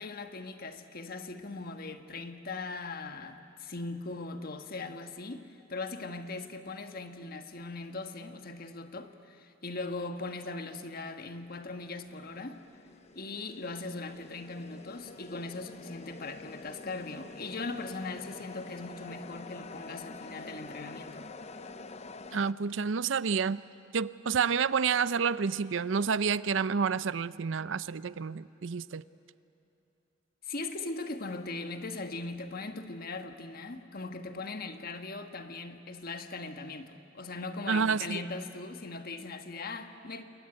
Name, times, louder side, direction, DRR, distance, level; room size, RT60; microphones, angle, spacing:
voice 1, 0.0-12.6 13.1-21.3 30.4-40.2, left 3 dB, 50° left, 1.4 m, -40 dB
sound 1, 11.1-22.5, left 3 dB, 35° left, 0.7 m, -47 dB
voice 2, 22.3-23.6 23.9-29.0 37.7-38.2, right 6 dB, 70° right, 0.5 m, -29 dB
27.5 x 21.5 x 9.8 m
head